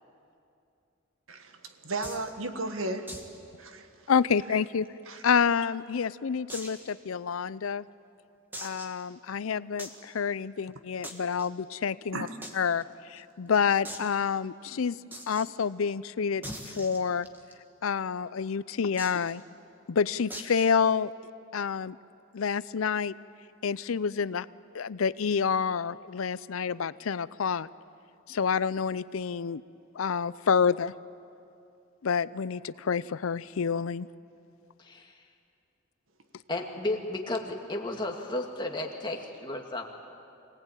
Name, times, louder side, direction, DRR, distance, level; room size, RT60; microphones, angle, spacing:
voice 1, 1.3-3.1 3.6-3.9 5.1-5.2 12.1-12.4, right 2 dB, 80° right, 7 dB, 1.6 m, -35 dB
sound 1, 2.0-2.3 3.1-3.4 3.6-3.7 4.1-4.2 4.9-5.6 6.5-6.9 7.4-7.5 8.5-9.0 9.8-10.0 11.0-11.5 12.4-12.5 12.8-12.9 13.2-13.3 13.8-14.1 15.1-15.5 16.4-17.5 19.0-19.3 20.3-20.7, equal, 10° right, 1.8 m, -41 dB
voice 2, 4.1-4.9 5.2-7.8 8.6-12.3 12.5-12.8 13.1-15.0 15.3-17.3 17.8-19.4 19.9-21.1 21.5-22.0 22.3-23.1 23.6-24.5 24.7-27.7 28.3-29.6 30.0-30.9 32.0-34.1, left 6 dB, 90° left, 17 dB, 0.5 m, -28 dB
voice 3, 34.8-35.1 36.5-39.8, left 2 dB, 20° left, 1 dB, 2.1 m, -33 dB
25.0 x 18.0 x 9.0 m, 2.5 s
head